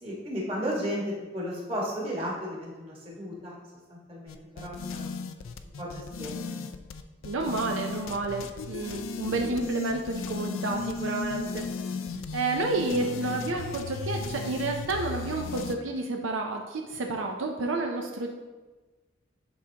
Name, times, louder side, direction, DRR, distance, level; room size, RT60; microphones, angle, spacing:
voice 1, 0.0-3.6 3.9-5.1 5.8-6.6 9.3-9.6 12.7-12.9 13.2-13.6, equal, 30° right, -5 dB, 1.5 m, -34 dB
sound 1, 4.3-15.8, left 4 dB, 85° left, 0.4 m, -36 dB
voice 2, 7.2-11.6 12.3-18.3, right 3 dB, 80° right, 2 dB, 0.5 m, -30 dB
11.0 x 3.7 x 2.8 m, 1.3 s
head